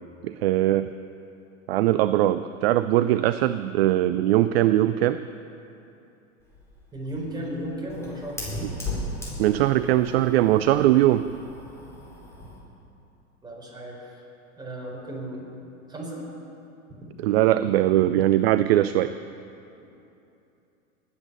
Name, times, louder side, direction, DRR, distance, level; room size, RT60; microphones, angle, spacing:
voice 1, 0.2-0.9 1.7-5.2 9.4-11.2 17.2-19.1, right 14 dB, 50° right, 13 dB, 0.5 m, -21 dB
Fire, 6.4-12.6, left 1 dB, 5° left, 4.6 m, -37 dB
voice 2, 6.9-8.5 13.4-14.2 14.5-15.5 15.9-16.3, right 1 dB, 10° right, -3 dB, 4.4 m, -35 dB
20.0 x 8.5 x 6.9 m, 2.8 s
hypercardioid pair, 100°, 41 cm